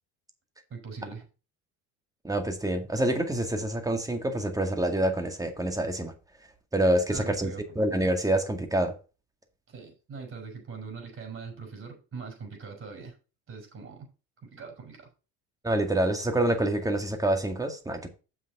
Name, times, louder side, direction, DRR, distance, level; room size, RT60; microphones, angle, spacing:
voice 1, 0.7-1.3 7.1-7.6 9.7-13.2 13.5-14.1 14.4-15.1, right 5 dB, 35° right, 2 dB, 5.6 m, -41 dB
voice 2, 2.2-6.1 6.7-8.9 15.6-18.1, right 1 dB, 10° right, 6 dB, 2.1 m, -27 dB
7.3 x 6.3 x 5.4 m, 0.33 s
supercardioid pair, 105°, 34 cm